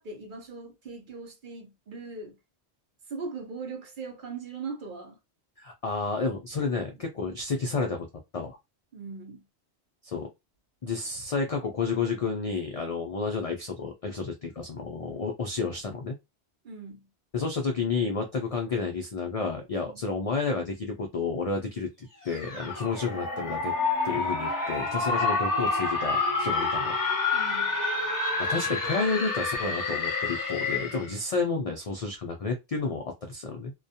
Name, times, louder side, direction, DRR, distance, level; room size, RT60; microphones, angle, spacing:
voice 1, 0.0-2.4 3.1-5.2 6.6-6.7 8.9-9.5 16.6-17.1 19.8-20.0 27.3-27.8, right 4 dB, 55° right, 0.7 m, -40 dB
voice 2, 5.6-8.1 8.3-8.6 10.0-10.3 10.8-16.2 17.3-23.7 24.0-27.0 28.4-33.7, left 4 dB, 65° left, 0.3 m, -31 dB
sound 1, 22.3-31.1, left 3 dB, 20° left, 0.7 m, -28 dB
2.3 x 2.1 x 2.7 m
omnidirectional pair, 1.1 m